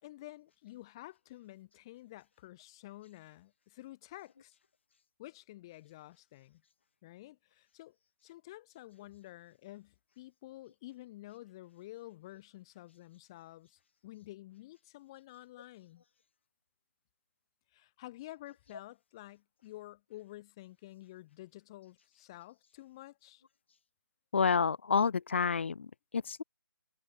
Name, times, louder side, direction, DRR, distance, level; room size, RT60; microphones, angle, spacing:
voice 1, 0.0-4.6 5.2-6.6 7.0-8.0 8.2-16.0 17.7-23.4, left 16 dB, 15° left, 3.6 m, -50 dB
voice 2, 24.3-25.9 26.1-26.4, left 5 dB, 35° left, 1.6 m, -29 dB
hypercardioid pair, 180°, 11 cm